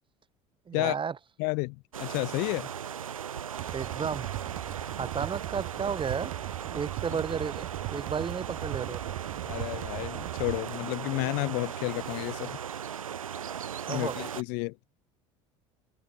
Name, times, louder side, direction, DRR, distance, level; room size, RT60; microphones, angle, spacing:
voice 1, 0.7-1.1 3.7-4.3 5.0-6.3 6.7-9.0 13.9-14.2, right 6 dB, 30° right, 1.7 m, -33 dB
voice 2, 1.4-2.7 9.4-12.6 13.9-14.8, left 34 dB, 65° left, 0.6 m, -31 dB
sound 1, 1.9-14.4, right 8 dB, 90° right, 1.4 m, -38 dB
sound 2, 3.6-10.6, right 31 dB, 65° right, 0.7 m, -38 dB
open air
hypercardioid pair, 70°, 17 cm